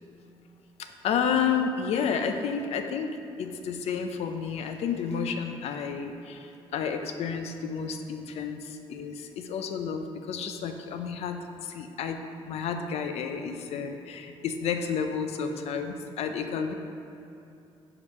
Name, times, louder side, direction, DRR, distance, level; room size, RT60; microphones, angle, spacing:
voice 1, 0.8-12.2 12.5-16.7, left 6 dB, 70° left, 6 dB, 0.5 m, -31 dB
5.0 x 4.9 x 4.1 m, 2.7 s
supercardioid pair, 75°, 11 cm